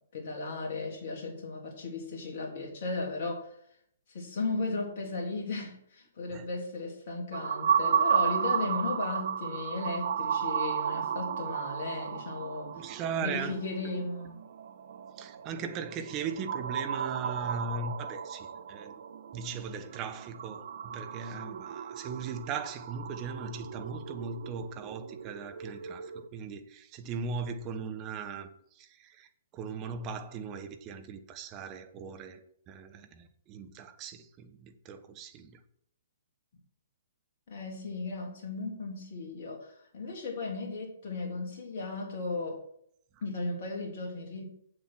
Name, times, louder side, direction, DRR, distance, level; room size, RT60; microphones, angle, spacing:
voice 1, 0.1-3.5 4.1-12.8 13.2-14.4 37.5-42.6 43.2-44.4, left 3 dB, 50° left, 0 dB, 3.5 m, -36 dB
sound 1, 7.3-26.3, right 7 dB, 55° right, 0.6 m, -34 dB
voice 2, 12.8-13.6 15.2-18.9 19.3-35.6, right 5 dB, 30° right, 8 dB, 1.1 m, -38 dB
8.0 x 7.6 x 6.4 m, 0.68 s
figure-of-eight pair, 120°, 0 cm